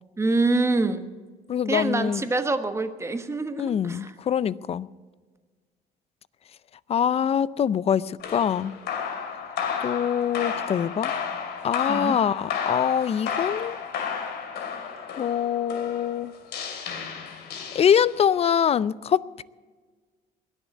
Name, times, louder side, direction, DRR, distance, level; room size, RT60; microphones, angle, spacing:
voice 1, 0.2-1.0 1.7-4.1 11.9-12.1, right 3 dB, 15° right, 1.2 m, -25 dB
voice 2, 1.5-2.3 3.6-4.9 6.9-8.7 9.8-11.1 11.6-13.8 15.2-16.3 17.7-19.4, left 8 dB, 35° left, 0.4 m, -24 dB
sound 1, 8.2-18.4, left 7 dB, 75° left, 2.6 m, -32 dB
21.0 x 7.2 x 8.3 m
cardioid pair, 110°, 17 cm